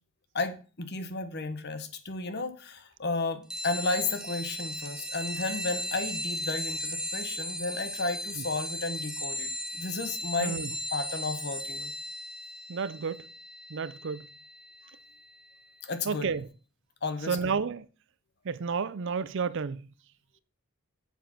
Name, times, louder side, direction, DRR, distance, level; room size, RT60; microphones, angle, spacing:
voice 1, 0.3-11.9 15.8-16.3 17.0-17.6, left 3 dB, 50° left, 1.2 m, -33 dB
sound 1, 3.5-15.6, left 1 dB, 5° right, 0.7 m, -37 dB
voice 2, 12.7-13.2 13.7-14.2 16.1-16.5 17.3-17.8 18.5-19.8, right 5 dB, 55° right, 0.5 m, -31 dB
7.3 x 6.9 x 5.8 m
head